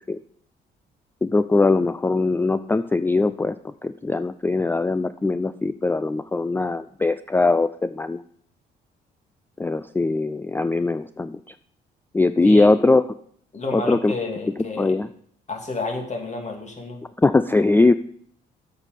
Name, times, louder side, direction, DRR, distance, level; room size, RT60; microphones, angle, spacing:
voice 1, 1.2-8.2 9.6-11.4 12.1-13.0 13.7-14.1 14.8-15.1 17.2-17.9, left 3 dB, 10° left, 12 dB, 0.4 m, -21 dB
voice 2, 13.5-15.0 15.5-17.0, left 3 dB, 35° left, 2 dB, 2.6 m, -30 dB
8.0 x 5.8 x 6.6 m, 0.63 s
supercardioid pair, 60°, 20 cm